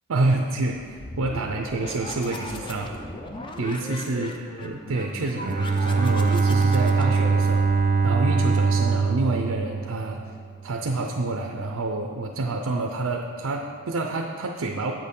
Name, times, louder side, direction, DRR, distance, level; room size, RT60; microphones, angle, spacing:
voice 1, 0.1-2.9 3.6-4.3 4.6-7.6 8.0-10.2 10.6-14.9, right 2 dB, 80° right, 2 dB, 0.6 m, -27 dB
sound 1, 0.9-8.4, left 1 dB, 20° left, 0.5 m, -38 dB
Bowed string instrument, 5.4-10.6, right 4 dB, 35° right, 0.5 m, -22 dB
7.9 x 6.6 x 5.3 m, 2.2 s
head